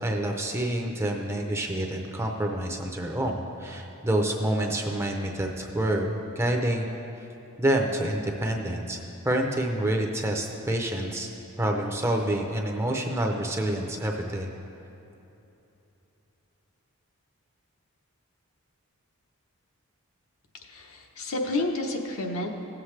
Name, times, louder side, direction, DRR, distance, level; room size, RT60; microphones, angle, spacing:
voice 1, 0.0-6.9 7.6-11.3 11.6-14.5, right 1 dB, 10° right, 2 dB, 0.6 m, -28 dB
voice 2, 20.6-22.5, left 2 dB, 75° left, 2 dB, 0.9 m, -30 dB
16.0 x 7.3 x 3.2 m, 3.0 s
head